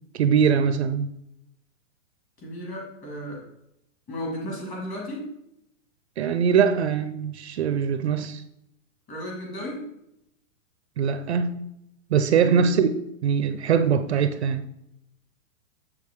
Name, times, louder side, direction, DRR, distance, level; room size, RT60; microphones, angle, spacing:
voice 1, 0.1-1.1 6.2-8.4 11.0-11.6 12.1-12.9 13.2-14.7, right 7 dB, 55° right, 11 dB, 0.5 m, -22 dB
voice 2, 2.4-3.5 4.1-5.3 9.1-9.9 12.3-12.6, equal, 20° left, -1 dB, 2.0 m, -34 dB
7.3 x 6.5 x 3.5 m, 0.81 s
hypercardioid pair, 170°, 40 cm